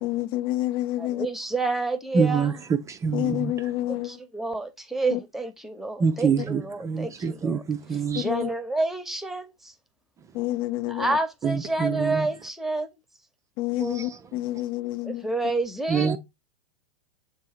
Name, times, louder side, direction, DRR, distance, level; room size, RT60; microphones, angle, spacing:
voice 1, 0.0-1.3 3.1-4.2 5.1-5.2 8.2-8.5 10.3-11.2 13.6-15.3, left 15 dB, 45° left, 0.4 m, -28 dB
voice 2, 1.0-2.6 3.9-7.6 8.2-9.7 10.9-12.9 15.0-16.2, right 2 dB, ahead, 0.8 m, -29 dB
voice 3, 2.1-2.5 2.9-3.5 6.0-8.3 11.4-12.3 13.8-14.2 15.9-16.2, right 5 dB, 20° right, 0.4 m, -26 dB
7.6 x 2.7 x 4.8 m
figure-of-eight pair, 95°, 16 cm